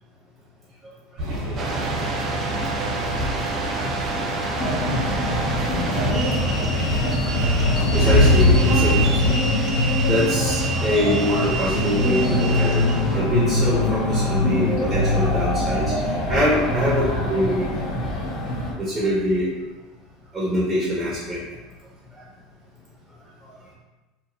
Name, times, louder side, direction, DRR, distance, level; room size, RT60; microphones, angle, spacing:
sound 1, 1.2-9.3, equal, 50° right, 1.0 m, -25 dB
sound 2, 1.6-13.2, right 3 dB, 25° right, 0.4 m, -29 dB
sound 3, 4.5-18.7, left 1 dB, 45° left, 0.6 m, -23 dB
voice 1, 7.9-8.9 9.2-9.3 10.1-12.8 13.1-15.9 16.3-17.6 18.8-19.5 20.3-21.4, equal, 10° right, -8 dB, 0.8 m, -24 dB
2.9 x 2.4 x 2.6 m, 1.1 s
supercardioid pair, 145°, 0 cm